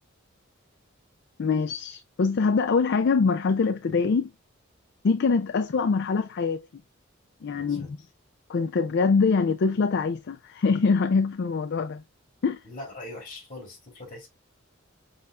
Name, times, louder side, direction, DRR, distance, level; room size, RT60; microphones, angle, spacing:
voice 1, 1.4-4.3 5.0-6.7 7.4-8.0 8.5-12.0 12.4-12.6, left 4 dB, 55° left, 0.4 m, -24 dB
voice 2, 7.5-7.9 12.6-14.3, left 2 dB, 40° left, 2.8 m, -41 dB
5.5 x 3.9 x 2.4 m
head